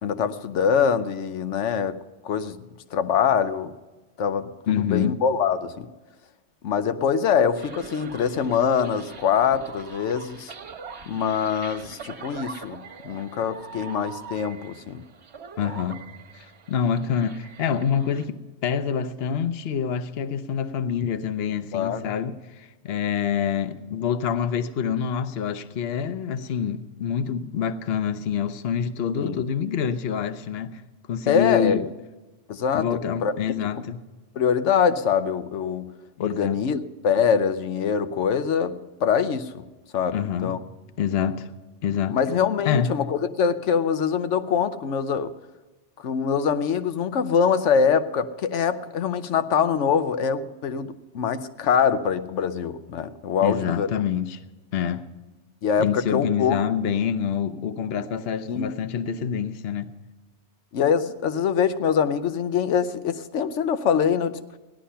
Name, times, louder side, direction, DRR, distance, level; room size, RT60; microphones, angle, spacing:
voice 1, 0.0-2.0 2.2-3.7 4.2-5.9 6.6-10.5 11.1-15.0 21.7-22.1 29.1-29.4 31.3-31.8 32.5-33.3 34.3-35.9 36.2-39.6 39.9-40.2 40.4-40.6 42.1-45.3 46.0-53.9 55.6-56.6 58.5-58.7 60.7-64.4, left 7 dB, 85° left, 1.1 m, -24 dB
voice 2, 4.7-5.2 15.6-16.0 16.3-30.8 31.1-31.9 32.7-34.0 36.2-36.6 40.1-40.5 41.0-41.5 41.8-42.2 42.6-42.9 53.4-54.4 54.7-55.0 55.8-59.9, left 8 dB, 60° left, 0.9 m, -26 dB
sound 1, 7.6-18.2, right 5 dB, 65° right, 1.4 m, -42 dB
16.5 x 11.5 x 5.6 m
omnidirectional pair, 1.2 m